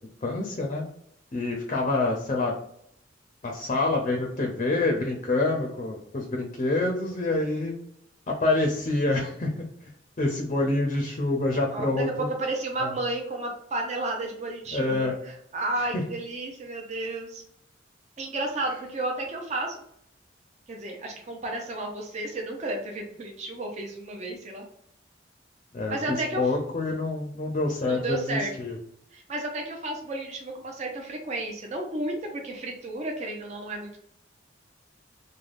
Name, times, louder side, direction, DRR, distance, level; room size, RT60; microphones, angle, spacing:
voice 1, 0.2-0.8 1.3-2.6 3.4-7.7 8.3-9.5 10.2-12.3 12.8-12.9 14.7-15.1 25.7-28.8, left 2 dB, 40° left, 1 dB, 0.5 m, -27 dB
voice 2, 11.7-17.4 18.2-19.8 20.7-24.7 25.9-26.5 27.8-28.5 29.1-34.0, right 2 dB, 40° right, 1 dB, 0.5 m, -32 dB
3.3 x 2.1 x 2.5 m, 0.70 s
head